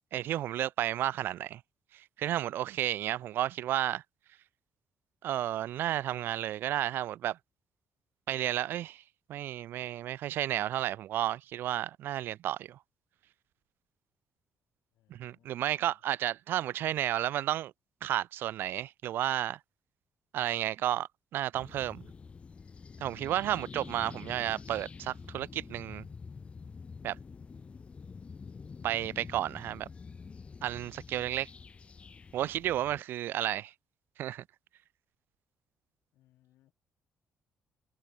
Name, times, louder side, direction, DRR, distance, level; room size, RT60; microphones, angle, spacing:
voice 1, 0.1-1.6 2.2-4.0 5.2-7.4 8.3-9.0 9.3-12.8 15.1-17.7 18.0-19.6 20.3-22.0 23.0-26.0 27.0-27.2 28.8-29.9 30.6-31.5 32.3-33.7 34.2-34.4, right 12 dB, 70° right, 0.4 m, -32 dB
voice 2, 15.0-15.9 36.1-36.7, left 14 dB, 85° left, 2.8 m, -68 dB
sound 1, 21.5-33.0, left 5 dB, 30° left, 0.9 m, -47 dB
open air
cardioid pair, 110°, 4 cm